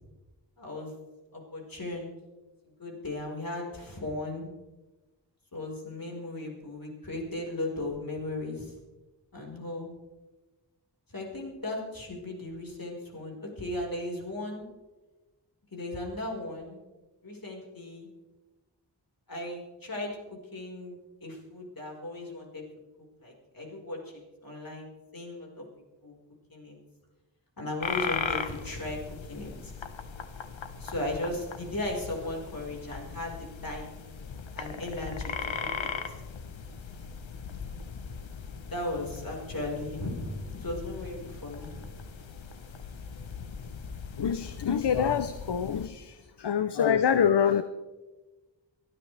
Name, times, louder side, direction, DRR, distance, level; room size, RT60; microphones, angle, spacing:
voice 1, 0.6-0.9 1.3-2.1 2.8-4.5 5.5-8.7 9.3-9.9 11.1-14.6 15.7-16.8 17.2-18.1 19.3-20.2 20.5-22.6 23.2-25.6 26.0-26.1 26.5-26.8 27.6-29.7 30.8-33.9 34.5-35.9 38.7-41.9, left 2 dB, 50° left, -1 dB, 4.8 m, -36 dB
sound 1, 27.8-45.9, left 6 dB, 85° left, 1.1 m, -39 dB
voice 2, 44.2-47.6, left 7 dB, 65° left, 11 dB, 0.7 m, -26 dB
23.5 x 12.5 x 3.4 m, 1.2 s
wide cardioid pair, 65°, 45 cm